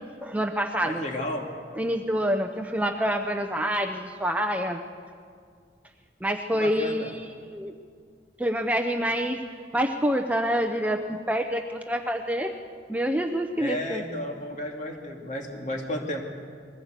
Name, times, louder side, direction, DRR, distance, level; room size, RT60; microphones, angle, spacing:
voice 1, 0.2-1.0 1.8-4.8 6.2-7.7 8.4-9.4 9.7-11.0 11.3-12.5 12.9-14.0, equal, 10° right, 5 dB, 0.6 m, -27 dB
voice 2, 0.8-1.5 6.5-7.1 13.6-16.2, left 1 dB, 40° left, 1 dB, 2.6 m, -33 dB
21.0 x 16.0 x 8.1 m, 2.1 s
head